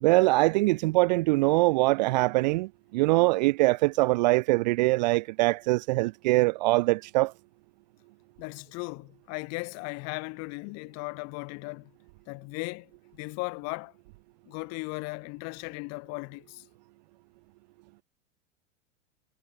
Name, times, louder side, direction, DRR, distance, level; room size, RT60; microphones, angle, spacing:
voice 1, 0.0-7.3, right 22 dB, 35° right, 0.5 m, -23 dB
voice 2, 8.4-11.9 12.3-13.9 14.5-16.6, left 30 dB, 40° left, 3.0 m, -37 dB
figure-of-eight pair, 95°, 39 cm